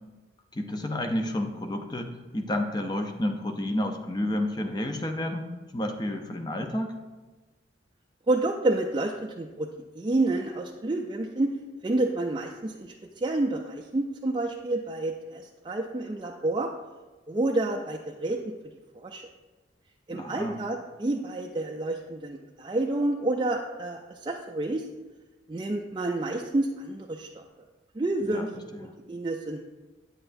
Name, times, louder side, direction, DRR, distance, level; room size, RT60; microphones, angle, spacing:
voice 1, 0.5-7.0 20.1-20.6 28.2-29.0, left 1 dB, 20° left, 5 dB, 0.6 m, -31 dB
voice 2, 8.3-9.7 9.9-11.5 11.8-16.7 17.3-18.4 18.9-19.2 20.1-24.8 25.5-27.4 28.0-28.5 29.1-29.6, right 2 dB, 25° right, 0 dB, 0.4 m, -29 dB
8.7 x 7.8 x 2.6 m, 1.2 s
head